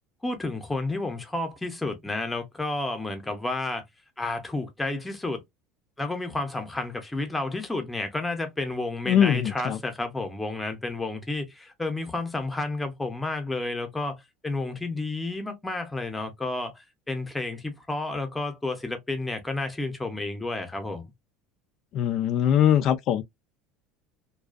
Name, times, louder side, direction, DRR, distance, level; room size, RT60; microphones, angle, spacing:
voice 1, 0.2-3.8 4.2-5.4 6.0-21.1, left 2 dB, 10° left, 0.7 m, -31 dB
voice 2, 9.1-9.8 21.9-23.2, left 10 dB, 50° left, 0.3 m, -22 dB
2.4 x 2.3 x 2.3 m
supercardioid pair, 130°, 0 cm